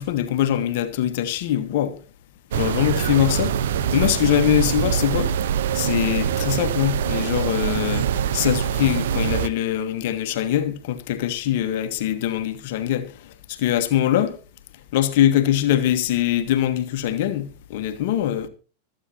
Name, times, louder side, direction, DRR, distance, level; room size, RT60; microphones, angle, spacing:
voice 1, 0.0-2.0 2.5-3.5 3.9-5.3 5.7-13.1 13.5-14.3 14.9-18.5, left 11 dB, 50° left, 1.3 m, -22 dB
sound 1, 2.5-9.5, right 8 dB, 60° right, 1.0 m, -24 dB
25.0 x 8.9 x 2.9 m
figure-of-eight pair, 90°, 0 cm